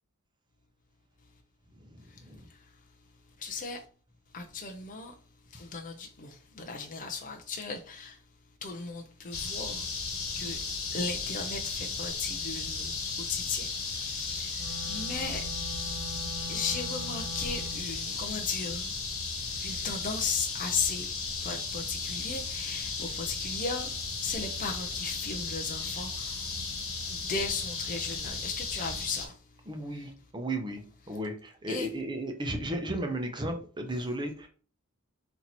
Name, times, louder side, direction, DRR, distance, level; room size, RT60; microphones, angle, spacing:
voice 1, 1.8-2.4 29.7-30.8 31.1-34.5, right 1 dB, 20° right, 0.9 m, -34 dB
voice 2, 3.4-3.8 4.3-5.1 5.5-8.2 8.6-9.9 10.4-10.6 10.9-15.6 16.5-18.9 19.4-21.1 21.4-23.9 24.2-26.5 27.1-29.4 31.7-31.9, left 4 dB, 40° left, 0.6 m, -36 dB
sound 1, 9.3-29.3, left 4 dB, 80° left, 1.6 m, -35 dB
Wind instrument woodwind instrument, 14.5-17.9, equal, 65° right, 1.4 m, -42 dB
4.3 x 2.9 x 4.1 m
head